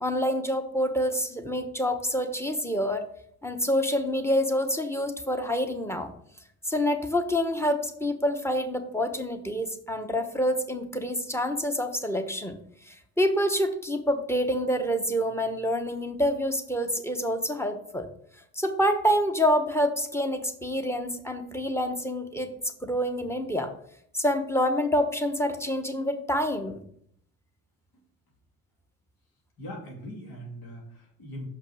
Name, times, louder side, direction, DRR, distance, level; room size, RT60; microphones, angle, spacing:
voice 1, 0.0-3.1 3.4-6.1 6.7-12.6 12.9-18.1 18.5-22.5 22.8-23.7 24.1-26.8, equal, 5° left, 8 dB, 1.1 m, -27 dB
voice 2, 29.6-31.5, equal, 70° left, -2 dB, 2.9 m, -40 dB
6.0 x 5.7 x 5.0 m, 0.68 s
supercardioid pair, 65°, 35 cm